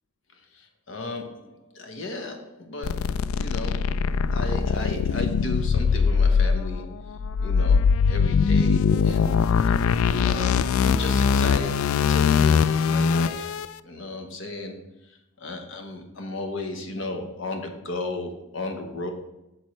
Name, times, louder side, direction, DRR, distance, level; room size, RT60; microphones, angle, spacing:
voice 1, 0.5-3.9 4.3-6.9 7.4-9.4 10.1-13.6 13.8-14.8 15.4-19.1, left 2 dB, 60° left, 5 dB, 1.0 m, -35 dB
sound 1, 2.8-13.7, left 6 dB, 75° left, 0.3 m, -22 dB
8.8 x 6.3 x 3.2 m, 0.93 s
head